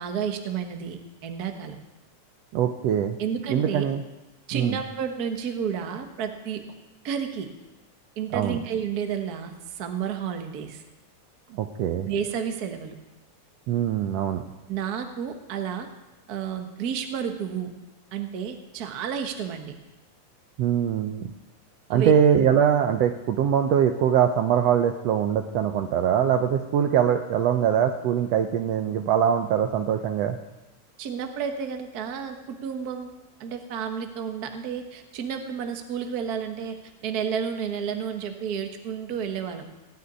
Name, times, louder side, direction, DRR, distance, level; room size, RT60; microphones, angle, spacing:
voice 1, 0.0-1.8 3.2-3.8 4.5-6.6 7.0-7.5 8.2-10.8 12.0-12.9 14.7-15.9 16.3-17.7 18.1-19.7 21.9-22.1 31.0-33.1 33.4-36.8 37.0-39.8, right 7 dB, 50° right, 5 dB, 1.2 m, -31 dB
voice 2, 2.5-3.2 3.5-4.0 4.5-4.8 8.3-8.6 11.5-12.1 13.7-14.4 20.6-21.3 21.9-30.4, right 9 dB, 75° right, 6 dB, 1.7 m, -22 dB
17.0 x 6.8 x 9.8 m, 1.0 s
omnidirectional pair, 3.4 m